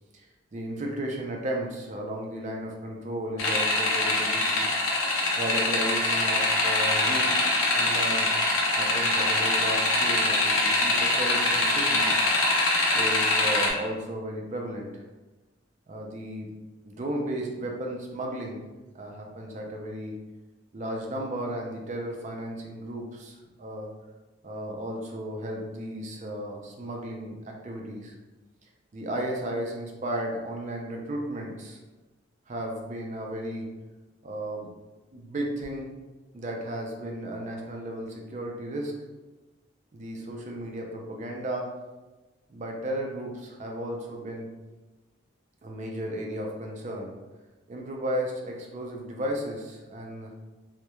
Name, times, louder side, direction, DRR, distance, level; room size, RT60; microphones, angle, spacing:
voice 1, 0.5-4.7 5.4-8.3 8.7-12.2 12.9-15.0 15.9-16.5 16.8-18.6 18.9-20.2 20.7-23.9 24.4-28.1 28.9-31.8 32.5-33.7 34.2-34.7 35.1-35.9 36.3-39.0 39.9-41.8 42.5-44.5 45.6-47.2 47.7-50.3, right 1 dB, 35° right, 0 dB, 0.4 m, -34 dB
sound 1, 3.4-13.7, left 2 dB, 90° left, 0.5 m, -24 dB
2.2 x 2.1 x 2.9 m, 1.2 s
head